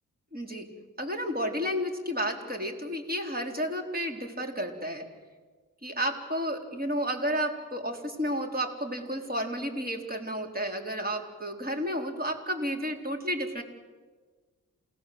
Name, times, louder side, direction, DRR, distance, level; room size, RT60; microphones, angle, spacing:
voice 1, 0.3-0.7 1.0-5.1 5.8-13.6, equal, 25° right, 3 dB, 4.2 m, -32 dB
28.5 x 18.0 x 7.9 m, 1.4 s
cardioid pair, 55°, 33 cm